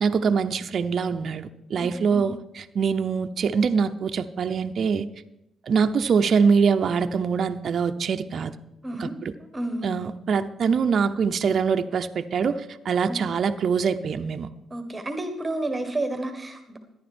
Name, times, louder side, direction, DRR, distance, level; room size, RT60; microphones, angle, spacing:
voice 1, 0.0-5.1 5.7-8.5 9.0-9.3 9.8-14.5, right 6 dB, 55° right, 8 dB, 0.7 m, -24 dB
voice 2, 1.8-2.3 8.8-9.1 9.5-10.0 13.1-13.2 14.7-16.8, right 1 dB, 20° right, 7 dB, 1.5 m, -31 dB
14.0 x 10.5 x 4.4 m, 0.86 s
cardioid pair, 90°, 0 cm